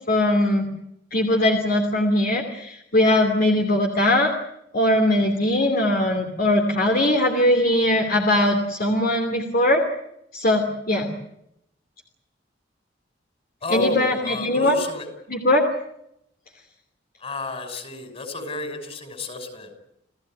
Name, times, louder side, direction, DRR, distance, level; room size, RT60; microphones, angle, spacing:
voice 1, 0.1-0.7 1.1-4.4 4.7-9.9 10.3-11.1 13.7-14.7 15.3-15.6, left 1 dB, 50° left, 3 dB, 2.8 m, -20 dB
voice 2, 13.6-15.1 17.2-19.8, left 2 dB, 35° left, 7 dB, 6.0 m, -31 dB
29.5 x 16.0 x 9.2 m, 0.79 s
head